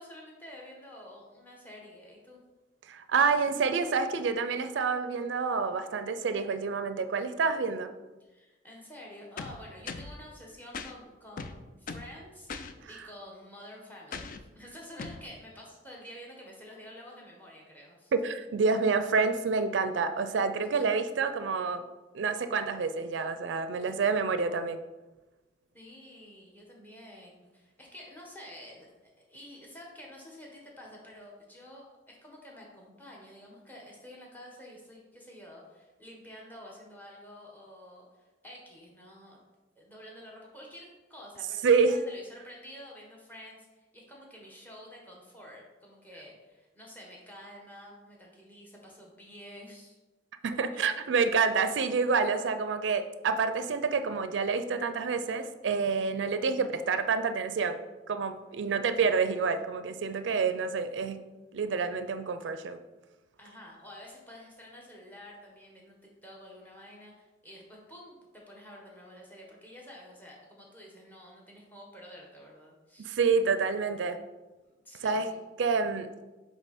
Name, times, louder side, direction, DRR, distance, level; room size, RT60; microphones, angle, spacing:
voice 1, 0.0-2.4 8.2-12.5 12.9-18.1 25.7-39.4 39.7-50.0 63.4-66.0 66.2-73.2 74.6-75.4, left 1 dB, 10° left, -2 dB, 1.3 m, -49 dB
voice 2, 2.9-7.9 12.8-12.9 18.1-21.8 22.1-24.8 41.6-42.0 50.4-57.8 58.1-61.2 61.5-62.8 73.0-74.2 75.0-75.3 75.6-76.2, right 5 dB, 85° right, 10 dB, 0.4 m, -28 dB
sound 1, 9.4-10.2 10.7-10.9 11.4-12.1 12.5-12.7 14.1-14.4 15.0-15.2, left 4 dB, 50° left, 0.4 m, -39 dB
8.0 x 3.5 x 4.2 m, 1.2 s
head